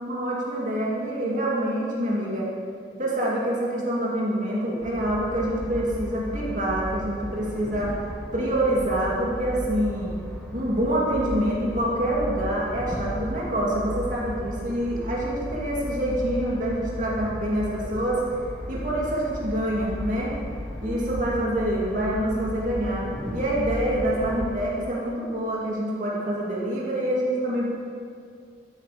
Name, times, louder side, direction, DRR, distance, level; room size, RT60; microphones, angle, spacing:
voice 1, 0.0-2.5 3.0-7.9 8.3-10.1 10.5-18.2 18.7-20.3 20.8-27.6, right 1 dB, 40° right, -5 dB, 2.8 m, -26 dB
sound 1, 4.8-24.6, equal, 5° left, 1.2 m, -35 dB
14.0 x 12.0 x 5.3 m, 2.3 s
head